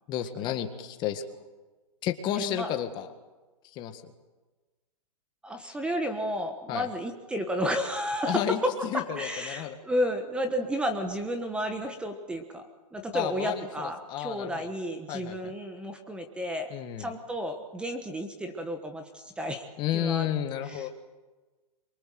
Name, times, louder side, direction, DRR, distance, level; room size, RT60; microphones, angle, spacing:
voice 1, 0.1-1.2 2.0-3.1 3.6-4.0 6.7-6.9 8.2-9.8 13.1-14.7 15.1-15.5 16.7-17.1 19.8-20.9, left 11 dB, 20° left, 8 dB, 1.7 m, -32 dB
voice 2, 2.4-2.7 5.4-8.4 9.2-12.6 12.9-16.7 17.0-19.7 19.9-20.3 20.6-20.9, equal, 5° right, 6 dB, 1.3 m, -32 dB
26.5 x 24.0 x 7.8 m, 1.2 s
hypercardioid pair, 160°, 20 cm